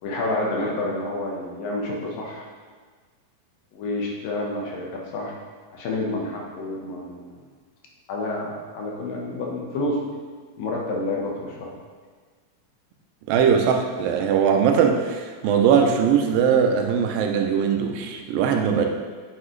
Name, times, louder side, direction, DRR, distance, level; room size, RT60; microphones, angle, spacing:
voice 1, 0.0-2.4 3.7-5.4 5.7-7.4 8.1-10.0 10.6-11.7, left 2 dB, 80° left, -2 dB, 3.0 m, -29 dB
voice 2, 13.3-18.9, right 7 dB, 85° right, 3 dB, 2.5 m, -20 dB
9.5 x 7.0 x 3.2 m, 1.5 s
omnidirectional pair, 3.9 m